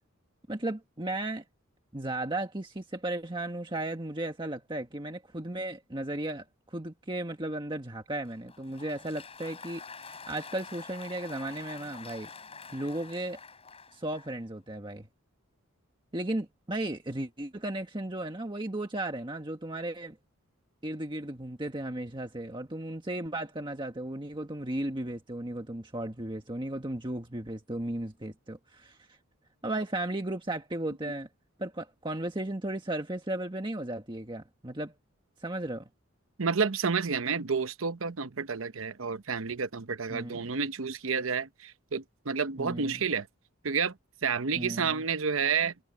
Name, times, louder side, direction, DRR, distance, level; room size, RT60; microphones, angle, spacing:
voice 1, 0.5-1.4 1.9-12.3 12.7-13.4 13.9-15.1 16.1-20.2 20.8-29.0 29.6-31.3 31.6-34.9 35.4-35.9 40.1-40.5 42.6-43.1 44.5-45.0, right 1 dB, 25° right, 1.6 m, -35 dB
Applause, 8.3-14.4, left 5 dB, 30° left, 6.6 m, -47 dB
voice 2, 36.4-43.3 43.6-43.9 44.2-45.7, right 5 dB, 70° right, 0.9 m, -30 dB
head